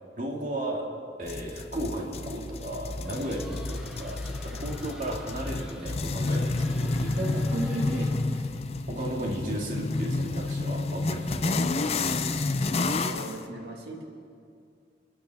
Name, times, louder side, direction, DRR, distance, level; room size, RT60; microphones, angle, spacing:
voice 1, 0.2-0.8 1.2-8.5 8.9-12.3, right 1 dB, 45° right, -1 dB, 2.0 m, -34 dB
sound 1, 1.3-13.4, left 3 dB, 35° left, 0.5 m, -30 dB
sound 2, 3.0-8.4, equal, 5° right, 0.9 m, -48 dB
voice 2, 12.9-14.0, right 1 dB, 70° right, 0 dB, 2.0 m, -41 dB
27.5 x 10.0 x 3.5 m, 2.3 s
head